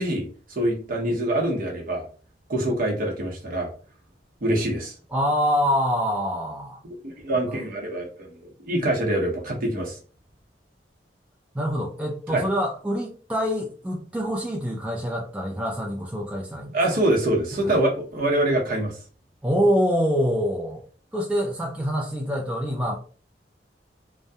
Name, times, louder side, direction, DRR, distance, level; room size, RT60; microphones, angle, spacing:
voice 1, 0.0-2.1 2.5-3.7 4.4-4.9 7.0-8.4 8.6-10.0 12.3-12.5 16.7-19.0, right 1 dB, 55° right, -1 dB, 0.8 m, -25 dB
voice 2, 5.1-6.8 11.5-16.8 17.6-17.8 19.4-20.8 21.1-23.0, equal, 10° right, -1 dB, 0.3 m, -25 dB
2.6 x 2.1 x 2.2 m, 0.40 s
head